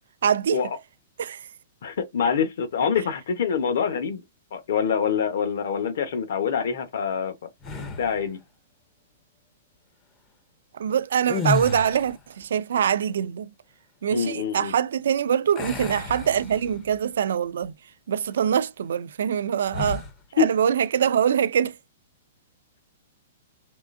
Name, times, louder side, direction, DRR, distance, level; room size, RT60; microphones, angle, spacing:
voice 1, 0.2-0.6 1.2-1.5 10.7-13.5 14.0-17.7 18.1-20.0 20.3-21.8, right 8 dB, 70° right, 0.4 m, -24 dB
voice 2, 1.8-4.2 4.5-7.5 8.0-8.4 14.1-14.7 20.4-20.5, left 7 dB, 55° left, 0.9 m, -25 dB
sound 1, 7.6-8.3 11.2-12.3 15.5-17.0 17.5-17.7 19.7-20.2, left 4 dB, 15° left, 0.5 m, -31 dB
3.6 x 3.3 x 2.5 m
hypercardioid pair, 180°, 0 cm